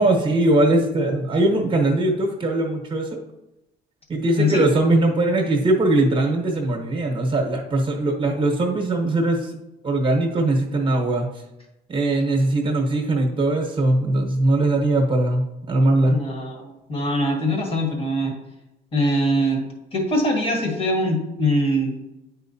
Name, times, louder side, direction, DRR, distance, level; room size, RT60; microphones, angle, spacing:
voice 1, 0.0-3.2 4.1-9.5 9.8-11.3 11.9-16.2, right 2 dB, 30° right, 2 dB, 1.0 m, -20 dB
voice 2, 4.3-4.7 16.0-18.3 18.9-19.6 19.9-22.0, equal, 35° left, 2 dB, 1.6 m, -22 dB
9.2 x 4.4 x 2.8 m, 0.93 s
cardioid pair, 110°, 17 cm